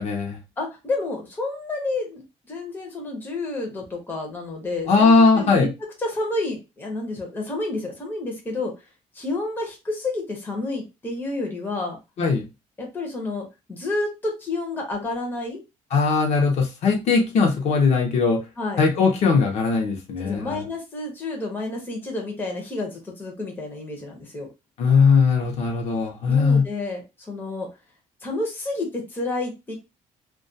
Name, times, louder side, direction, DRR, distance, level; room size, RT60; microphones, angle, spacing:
voice 1, 0.0-0.4 4.9-5.7 12.2-12.4 15.9-18.4 18.8-20.6 24.8-26.6, left 4 dB, 55° left, 1 dB, 0.7 m, -19 dB
voice 2, 0.6-5.7 6.0-8.7 9.1-12.0 12.8-15.6 18.6-18.8 20.2-24.5 26.3-27.7 28.2-29.7, left 2 dB, 15° left, 0 dB, 0.6 m, -30 dB
2.3 x 2.2 x 2.6 m, 0.25 s
cardioid pair, 170°, 13 cm